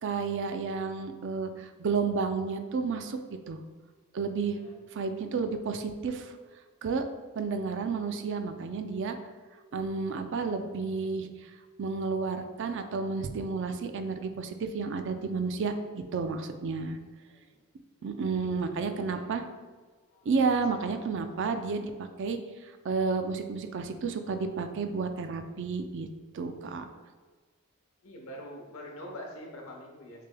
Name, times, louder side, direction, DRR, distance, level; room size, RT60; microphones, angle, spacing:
voice 1, 0.0-3.2 3.5-3.6 4.1-4.6 4.9-6.3 6.8-7.0 7.4-9.1 9.7-11.3 11.8-17.0 18.0-19.4 20.3-21.9 22.2-22.4 22.8-26.1 26.3-26.8, right 4 dB, 60° right, 7 dB, 0.4 m, -31 dB
voice 2, 17.0-17.7 18.0-19.3 20.1-20.2 20.7-20.8 28.0-30.3, equal, 80° left, 1 dB, 0.9 m, -46 dB
6.6 x 3.3 x 2.2 m, 1.5 s
head